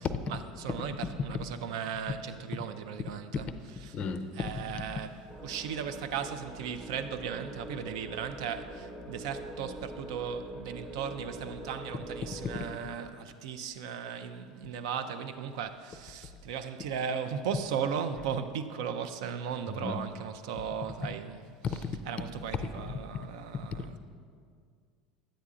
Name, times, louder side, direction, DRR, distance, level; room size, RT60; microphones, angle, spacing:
voice 1, 0.3-3.5 4.4-5.1 5.4-21.4 22.1-23.9, right 7 dB, 70° right, 0.4 m, -36 dB
voice 2, 3.1-3.6 3.9-5.0 12.2-12.7 14.6-14.7 19.8-20.1 21.6-23.3 23.5-24.0, left 5 dB, 35° left, 0.4 m, -36 dB
sound 1, 5.3-12.8, right 1 dB, 15° right, 0.9 m, -44 dB
10.0 x 8.1 x 2.5 m
hypercardioid pair, 80°, 3 cm